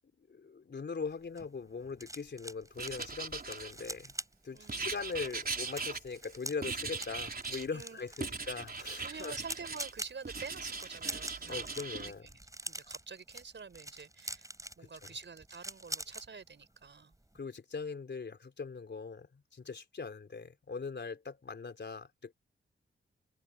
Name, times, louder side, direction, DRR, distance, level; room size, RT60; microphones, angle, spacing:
voice 1, 0.3-4.1 4.4-9.4 11.5-12.3 14.8-14.9 17.3-22.3, left 4 dB, 55° left, 3.9 m, -41 dB
sound 1, 1.1-16.3 16.6-16.9 17.1-17.4, right 1 dB, 15° right, 5.0 m, -45 dB
Writing, 2.8-4.1 4.7-6.3 6.6-7.7 8.2-9.9 10.2-12.1, right 4 dB, 45° right, 4.0 m, -39 dB
voice 2, 4.5-4.9 7.7-8.4 9.0-14.5 14.8-17.1, right 5 dB, 60° right, 5.3 m, -48 dB
open air
cardioid pair, 45°, 21 cm